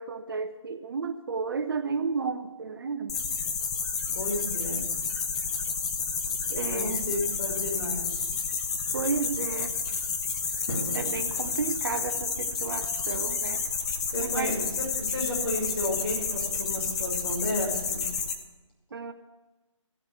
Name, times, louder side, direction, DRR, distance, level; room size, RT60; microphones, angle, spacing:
voice 1, 0.0-3.2 6.5-7.2 8.9-9.7 10.9-13.6 14.2-14.6 18.9-19.1, right 5 dB, 40° right, 8 dB, 0.8 m, -32 dB
sound 1, 3.1-18.3, left 5 dB, 10° left, 0.4 m, -30 dB
voice 2, 4.1-4.9 6.7-8.3 14.1-14.7 15.0-18.1, left 1 dB, 50° left, -3 dB, 6.1 m, -32 dB
Drum, 10.7-12.6, equal, 85° left, 3.3 m, -39 dB
15.0 x 7.3 x 7.8 m, 1.1 s
figure-of-eight pair, 160°, 17 cm